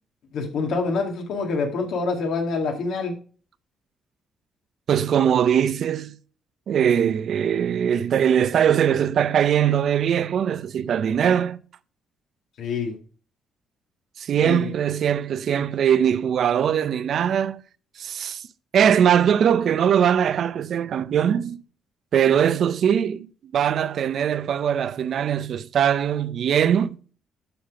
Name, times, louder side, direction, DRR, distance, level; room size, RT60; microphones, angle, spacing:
voice 1, 0.3-3.1 12.6-13.0 14.4-14.7, left 4 dB, 75° left, 2.0 m, -26 dB
voice 2, 4.9-6.2 6.7-11.6 14.2-17.6 18.0-18.4 18.7-21.6 22.1-23.3 23.5-27.0, right 9 dB, 65° right, 0.5 m, -21 dB
11.5 x 4.1 x 4.6 m
cardioid pair, 90°, 0 cm